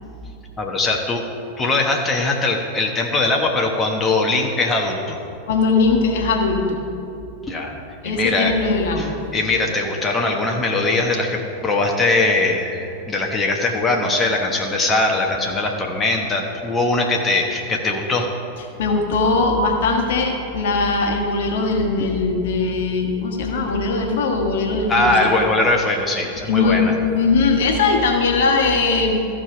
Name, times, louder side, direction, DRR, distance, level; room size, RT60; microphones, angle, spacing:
voice 1, 0.6-1.2 1.6-5.2 7.5-8.5 9.0-18.3 24.9-26.9, left 2 dB, 15° left, 0 dB, 1.1 m, -21 dB
voice 2, 5.5-6.8 8.0-9.2 18.8-25.3 26.5-29.2, left 3 dB, 55° left, 2 dB, 1.3 m, -20 dB
14.5 x 5.0 x 6.0 m, 2.8 s
figure-of-eight pair, 90°, 0 cm